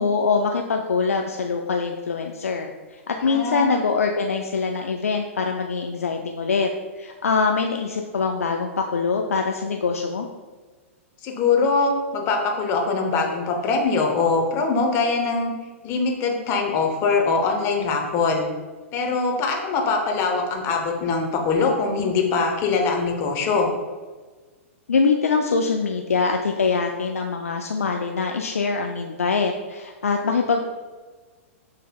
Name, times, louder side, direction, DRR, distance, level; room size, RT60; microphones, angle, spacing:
voice 1, 0.0-6.7 7.0-10.3 24.9-30.7, left 4 dB, 85° left, 3 dB, 0.3 m, -23 dB
voice 2, 3.2-3.8 11.2-15.5 15.8-18.5 18.9-23.7, left 4 dB, 35° left, 2 dB, 0.8 m, -22 dB
6.5 x 3.3 x 2.3 m, 1.3 s
hypercardioid pair, 115°, 7 cm